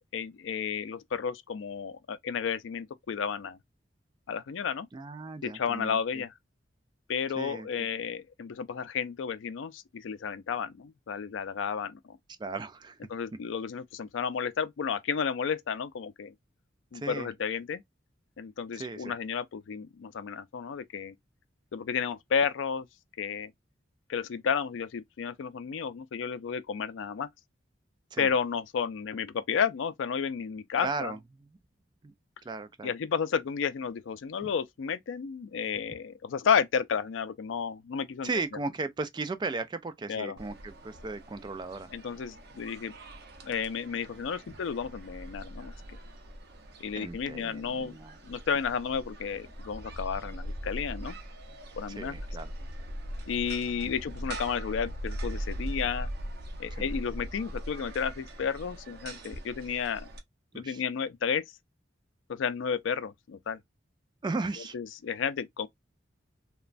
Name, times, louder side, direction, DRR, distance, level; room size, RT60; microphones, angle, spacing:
voice 1, 0.1-3.6 4.3-4.9 5.4-6.3 7.1-12.2 13.1-16.3 16.9-17.8 18.4-21.1 21.7-22.9 23.2-23.5 24.1-27.3 28.2-31.1 32.8-38.3 40.1-40.4 41.9-42.9 43.4-45.7 46.8-48.0 48.2-51.2 51.8-52.1 53.3-56.1 56.6-60.1 60.5-61.4 62.3-63.6 64.7-65.7, left 6 dB, 80° left, 0.4 m, -32 dB
voice 2, 4.9-6.2 7.4-7.9 12.4-13.0 16.9-17.3 18.7-19.1 28.1-28.3 30.8-31.5 32.0-32.1 32.4-32.9 38.2-41.9 47.0-48.2 52.0-52.5 53.8-53.9 56.8-56.9 60.5-60.8 64.2-64.8, right 3 dB, 25° right, 0.3 m, -36 dB
sound 1, 40.4-60.2, equal, 55° right, 0.7 m, -41 dB
3.0 x 2.2 x 2.4 m
head